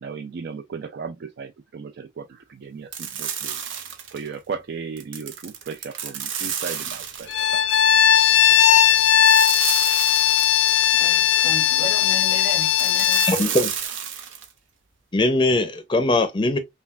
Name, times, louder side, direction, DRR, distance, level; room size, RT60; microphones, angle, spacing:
voice 1, 0.0-3.6 4.1-7.3, right 5 dB, 60° right, 0.4 m, -35 dB
sound 1, 2.9-4.3 5.0-7.5 9.3-11.0 12.8-14.5, right 8 dB, 90° right, 0.7 m, -31 dB
Bowed string instrument, 7.3-13.4, left 10 dB, 75° left, 0.5 m, -18 dB
voice 2, 10.9-13.6, right 2 dB, 45° right, 2.5 m, -35 dB
voice 3, 13.3-13.7 15.1-16.6, left 2 dB, 25° left, 0.5 m, -20 dB
5.5 x 2.3 x 2.3 m
head